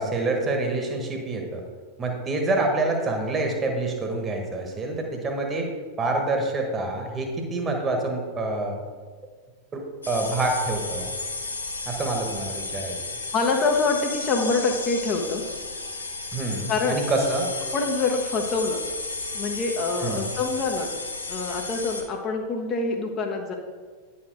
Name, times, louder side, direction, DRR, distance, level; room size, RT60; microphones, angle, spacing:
voice 1, 0.0-1.6 2.0-5.7 6.0-8.8 9.7-11.1 11.9-13.0 16.3-17.5 20.0-20.3, right 2 dB, 20° right, 3 dB, 1.3 m, -27 dB
sound 1, 10.0-22.0, left 3 dB, 80° left, 0.9 m, -33 dB
voice 2, 13.3-15.4 16.7-17.0 17.7-18.8 19.3-20.9 21.3-23.5, left 4 dB, 30° left, 2 dB, 0.8 m, -25 dB
9.4 x 4.4 x 4.8 m, 1.5 s
figure-of-eight pair, 90°, 0 cm